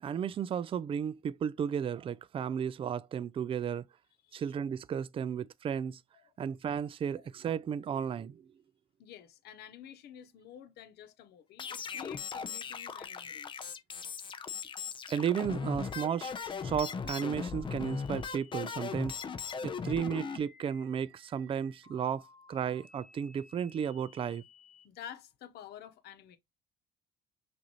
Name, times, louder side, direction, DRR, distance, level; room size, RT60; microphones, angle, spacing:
voice 1, 0.0-3.8 4.3-6.0 6.4-8.4 15.1-19.2 19.6-24.4, right 8 dB, 35° right, 0.4 m, -34 dB
voice 2, 9.0-13.6 24.8-26.4, left 10 dB, 75° left, 0.9 m, -50 dB
sound 1, 11.6-20.4, left 6 dB, 30° left, 0.6 m, -38 dB
sound 2, 15.8-24.8, left 2 dB, ahead, 1.7 m, -59 dB
6.1 x 2.6 x 3.0 m
cardioid pair, 110°, 17 cm